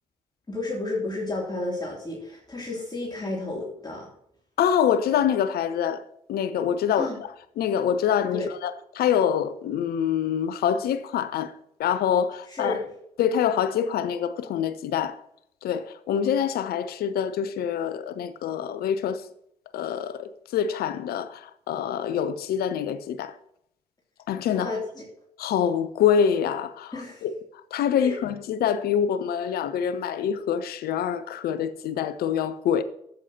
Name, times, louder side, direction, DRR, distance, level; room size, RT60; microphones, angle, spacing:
voice 1, 0.5-4.1 6.9-7.2 8.3-8.5 12.5-12.9 24.5-25.0 26.9-27.2 28.0-28.2, left 2 dB, 25° left, 2.9 m, -31 dB
voice 2, 4.6-11.5 11.8-12.8 13.2-15.2 15.6-19.3 19.7-23.4 24.3-24.7 25.4-27.3 27.7-32.8, left 8 dB, 60° left, 0.7 m, -25 dB
13.0 x 8.0 x 2.9 m
figure-of-eight pair, 40°, 18 cm